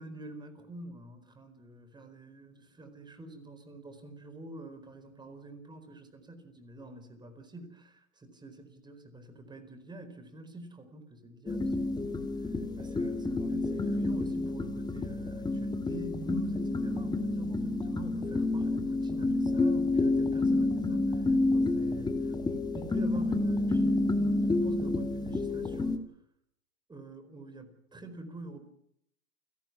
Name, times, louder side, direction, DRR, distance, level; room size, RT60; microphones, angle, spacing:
voice 1, 0.0-11.7 12.0-22.3 22.7-26.0 26.9-28.7, right 2 dB, 10° right, 8 dB, 4.6 m, -46 dB
sound 1, 11.5-26.0, left 2 dB, 10° left, 2.1 m, -29 dB
29.5 x 17.0 x 6.0 m, 0.72 s
hypercardioid pair, 110°, 42 cm